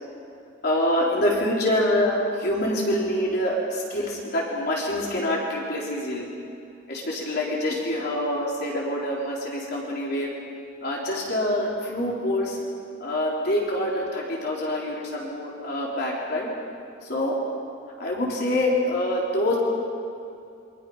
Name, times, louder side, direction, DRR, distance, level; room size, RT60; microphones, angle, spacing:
voice 1, 0.6-6.3 6.9-10.4 10.8-12.6 13.0-16.5 17.1-17.4 18.0-19.6, left 1 dB, 50° left, -4 dB, 4.2 m, -26 dB
28.0 x 25.5 x 5.7 m, 2.6 s
head